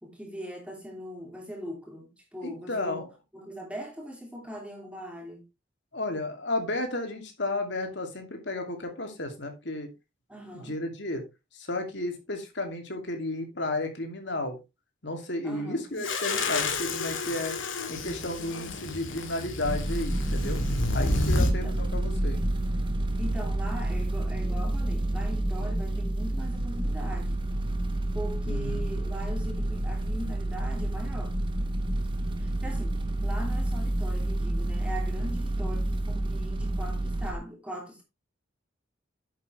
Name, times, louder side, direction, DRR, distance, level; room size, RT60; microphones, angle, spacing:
voice 1, 0.0-3.0 3.3-5.4 10.3-10.7 15.4-16.1 21.3-21.7 23.2-27.4 28.1-31.3 32.4-38.0, equal, 5° right, 2.9 m, -40 dB
voice 2, 2.4-3.1 5.9-9.9 10.5-11.2 11.5-14.6 15.0-17.6 17.9-20.6 20.9-22.4 28.5-28.9, left 2 dB, 60° left, 2.7 m, -33 dB
sound 1, 16.0-21.5, left 2 dB, 80° left, 2.0 m, -29 dB
sound 2, 19.6-37.3, right 1 dB, 25° right, 1.0 m, -29 dB
10.5 x 7.8 x 3.3 m
head